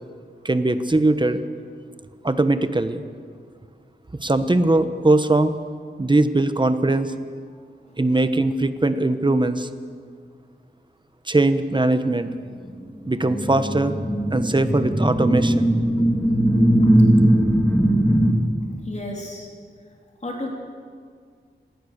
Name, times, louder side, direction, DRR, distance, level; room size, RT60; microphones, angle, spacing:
voice 1, 0.4-1.4 2.2-3.0 4.2-5.6 6.0-7.1 8.0-9.7 11.3-12.3 13.1-14.0 14.3-15.7, right 2 dB, 25° right, 10 dB, 1.2 m, -20 dB
sound 1, 13.0-18.3, right 1 dB, 10° left, 3.0 m, -19 dB
voice 2, 18.8-19.5 20.2-20.5, left 1 dB, 35° left, -1 dB, 3.2 m, -32 dB
25.5 x 18.5 x 6.7 m, 2.1 s
wide cardioid pair, 100°, 20 cm